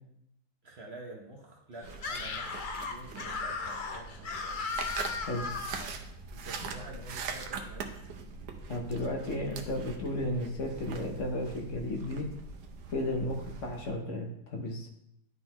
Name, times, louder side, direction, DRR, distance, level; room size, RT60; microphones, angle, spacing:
voice 1, 0.6-4.6 6.3-8.0, right 2 dB, 50° right, 0 dB, 0.9 m, -48 dB
sound 1, 1.8-13.9, right 4 dB, 80° right, 1.2 m, -42 dB
Screaming, 1.9-5.9, left 4 dB, 80° left, 0.4 m, -36 dB
voice 2, 8.7-12.3 12.9-14.9, left 1 dB, 55° left, 2 dB, 1.0 m, -34 dB
11.0 x 3.8 x 2.9 m, 0.78 s
omnidirectional pair, 1.7 m